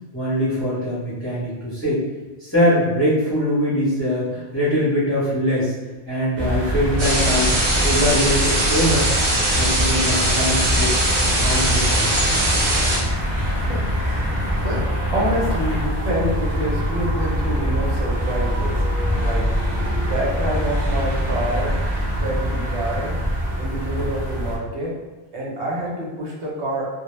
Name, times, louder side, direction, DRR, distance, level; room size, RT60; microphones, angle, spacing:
voice 1, 0.1-2.0 2.4-5.7 6.1-7.5 7.8-9.1 9.5-10.9 11.4-12.4, equal, 15° left, -9 dB, 0.7 m, -22 dB
sound 1, 6.4-24.6, equal, 25° right, 0.3 m, -24 dB
sound 2, 7.0-13.0, right 1 dB, 45° right, 0.7 m, -21 dB
sound 3, 8.7-15.9, left 1 dB, 70° left, 0.4 m, -34 dB
voice 2, 13.4-14.8 15.1-18.9 19.2-19.5 19.9-21.8 22.1-23.2 23.6-25.0 25.3-26.9, right 1 dB, 70° right, -3 dB, 0.9 m, -27 dB
2.1 x 2.0 x 3.0 m, 1.3 s
omnidirectional pair, 1.2 m